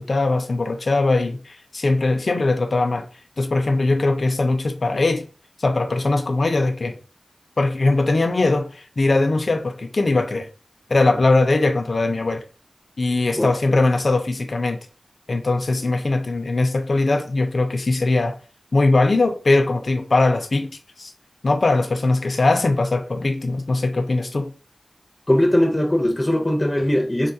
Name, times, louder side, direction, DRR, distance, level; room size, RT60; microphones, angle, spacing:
voice 1, 0.0-3.1 3.4-5.3 5.6-7.0 7.6-10.5 10.9-12.4 13.0-14.8 15.3-18.4 18.7-21.1 21.4-24.5, left 2 dB, 70° left, 0.5 m, -20 dB
voice 2, 25.3-27.3, left 1 dB, 25° left, 0.6 m, -19 dB
3.8 x 2.3 x 2.7 m
wide cardioid pair, 50°, 0 cm